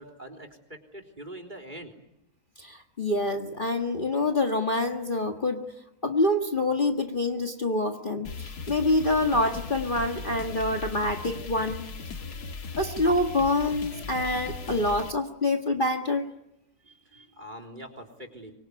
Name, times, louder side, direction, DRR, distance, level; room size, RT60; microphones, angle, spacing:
voice 1, 0.0-1.9 16.8-18.5, right 1 dB, 30° right, 6 dB, 3.8 m, -44 dB
voice 2, 2.6-5.7 6.0-11.9 12.8-16.2, left 2 dB, 35° left, 4 dB, 1.8 m, -26 dB
sound 1, 8.2-15.1, left 4 dB, 85° left, 2.1 m, -38 dB
25.0 x 23.5 x 9.7 m, 0.83 s
omnidirectional pair, 1.6 m